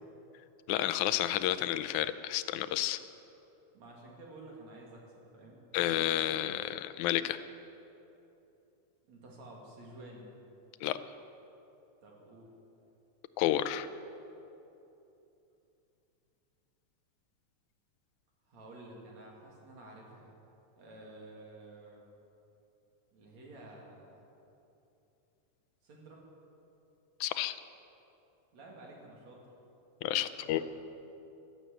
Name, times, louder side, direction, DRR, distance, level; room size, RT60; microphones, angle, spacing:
voice 1, 0.7-3.0 5.7-7.4 10.8-11.0 13.4-13.9 27.2-27.6 30.0-30.6, left 13 dB, 90° left, 13 dB, 2.1 m, -30 dB
voice 2, 3.7-5.0 5.3-5.6 9.1-10.3 12.0-12.5 18.5-20.3 20.8-22.1 23.1-24.2 25.8-26.2 28.5-29.4 30.1-30.6, right 2 dB, 65° right, -2 dB, 3.8 m, -51 dB
14.5 x 12.5 x 7.8 m, 2.9 s
omnidirectional pair, 3.4 m